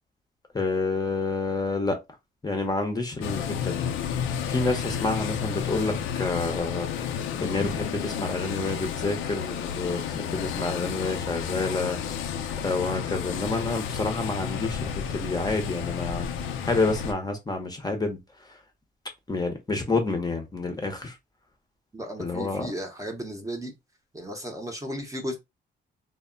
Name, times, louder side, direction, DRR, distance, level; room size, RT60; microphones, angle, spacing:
voice 1, 0.5-2.0 2.4-3.8 4.5-12.0 12.6-16.3 16.6-18.6 19.3-21.2 22.2-22.7, left 3 dB, 20° left, 0.7 m, -29 dB
sound 1, 3.2-17.1, left 8 dB, 80° left, 0.5 m, -31 dB
voice 2, 21.9-23.7 24.1-25.4, equal, 15° right, 0.7 m, -35 dB
2.1 x 2.0 x 3.7 m
cardioid pair, 90°, 20 cm